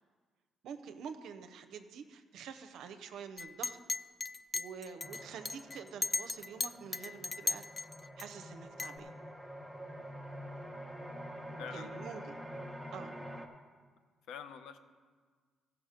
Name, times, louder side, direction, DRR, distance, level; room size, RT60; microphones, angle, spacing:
voice 1, 0.6-3.8 4.5-7.6 8.2-9.1 11.5-12.4 12.9-13.2, right 7 dB, 80° right, 8 dB, 0.5 m, -47 dB
Chink clink, 3.4-8.2 8.8-9.0, left 3 dB, 30° left, 0.3 m, -37 dB
sound 1, 5.0-13.5, equal, ahead, 1.0 m, -47 dB
voice 2, 11.6-12.0 14.3-14.8, left 7 dB, 85° left, 9 dB, 0.6 m, -45 dB
14.5 x 5.9 x 5.0 m, 1.5 s
cardioid pair, 90°, 0 cm